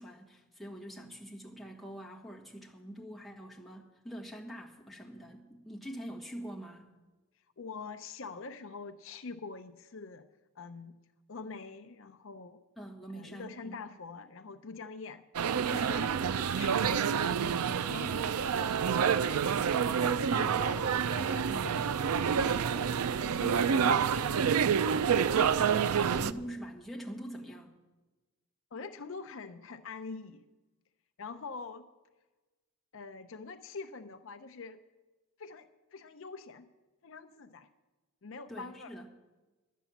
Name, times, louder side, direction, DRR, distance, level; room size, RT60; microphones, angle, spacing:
voice 1, 0.0-6.9 12.8-13.8 26.1-27.7 38.5-39.1, right 1 dB, ahead, -3 dB, 1.5 m, -45 dB
voice 2, 7.6-10.2 10.6-11.0 11.3-12.6 13.1-15.2 15.7-16.2 16.5-19.6 20.1-20.9 21.2-25.2 28.7-30.4 31.2-31.9 32.9-34.8 35.4-36.7 37.0-37.7 38.2-38.9, left 4 dB, 60° left, 9 dB, 0.6 m, -45 dB
sound 1, 15.4-26.3, right 7 dB, 85° right, 0.4 m, -28 dB
11.5 x 9.3 x 7.1 m, 1.2 s
head